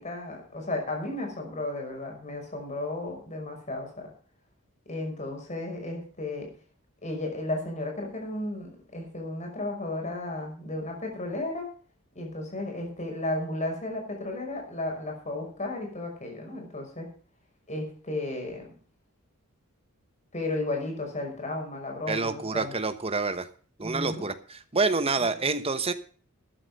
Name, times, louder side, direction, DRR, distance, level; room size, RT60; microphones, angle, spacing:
voice 1, 0.0-4.1 4.9-6.5 7.0-11.7 12.2-17.1 17.7-18.7 20.3-22.7 23.8-24.3 25.2-25.3, left 2 dB, 35° left, 2 dB, 5.6 m, -34 dB
voice 2, 22.1-23.5 23.8-25.9, right 3 dB, 25° right, 10 dB, 1.2 m, -27 dB
13.5 x 9.7 x 5.4 m, 0.42 s
head